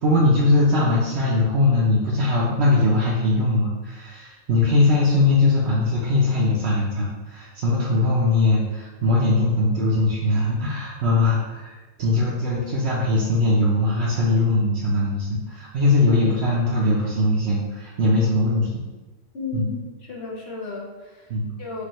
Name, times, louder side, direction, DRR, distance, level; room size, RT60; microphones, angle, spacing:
voice 1, 0.0-11.7 12.0-18.7 19.5-19.7 21.3-21.5, left 2 dB, 65° right, -5 dB, 0.8 m, -20 dB
voice 2, 19.3-19.8 20.1-21.3 21.6-21.8, left 4 dB, 60° left, -3 dB, 1.0 m, -33 dB
4.8 x 2.5 x 3.0 m, 1.2 s
omnidirectional pair, 1.3 m